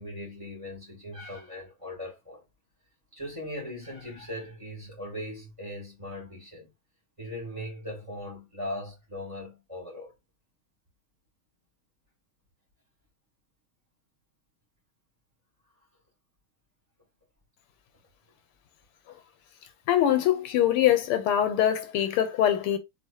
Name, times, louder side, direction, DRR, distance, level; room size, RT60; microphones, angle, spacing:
voice 1, 0.0-2.4 3.1-6.7 7.2-10.1, left 1 dB, 15° right, 2.2 m, -39 dB
voice 2, 19.9-22.8, left 11 dB, 85° left, 1.7 m, -23 dB
4.1 x 3.4 x 2.7 m
omnidirectional pair, 2.4 m